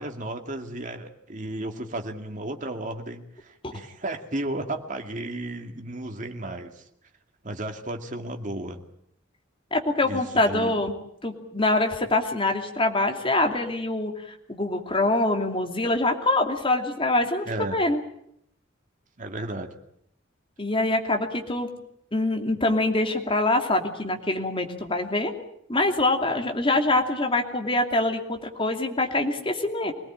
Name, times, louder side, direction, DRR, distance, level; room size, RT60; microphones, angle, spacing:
voice 1, 0.0-6.9 7.4-8.8 10.1-10.8 17.5-17.8 19.2-19.8, right 1 dB, 40° right, 4 dB, 2.3 m, -34 dB
voice 2, 9.7-10.9 11.2-18.0 20.6-21.7 22.1-25.3 25.7-29.9, left 2 dB, 25° left, 4 dB, 2.7 m, -24 dB
24.5 x 18.5 x 8.9 m, 0.74 s
head